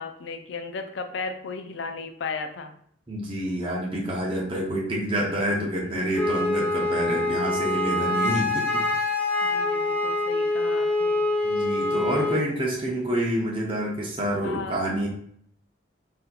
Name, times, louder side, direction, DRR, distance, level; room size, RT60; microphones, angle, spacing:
voice 1, 0.0-2.7 5.8-6.0 9.4-11.2 14.4-15.1, left 4 dB, 70° left, 6 dB, 0.4 m, -35 dB
voice 2, 3.1-8.8 11.4-15.1, equal, 30° right, -3 dB, 0.7 m, -27 dB
Wind instrument woodwind instrument, 6.1-12.4, left 2 dB, 10° left, 0.6 m, -25 dB
4.1 x 2.7 x 2.3 m, 0.66 s
head